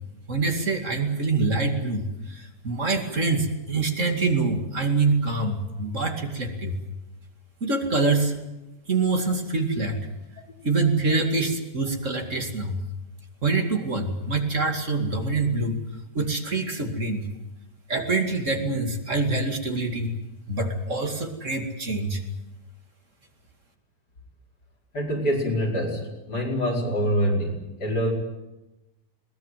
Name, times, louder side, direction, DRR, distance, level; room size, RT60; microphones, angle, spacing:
voice 1, 0.3-6.8 7.6-8.3 8.9-10.0 10.6-12.8 13.4-15.8 16.1-17.3 17.9-20.2 20.5-22.2, right 3 dB, 45° right, 4 dB, 2.8 m, -25 dB
voice 2, 24.9-28.1, equal, 75° left, -1 dB, 5.6 m, -25 dB
21.5 x 20.0 x 9.2 m, 1.0 s
omnidirectional pair, 1.8 m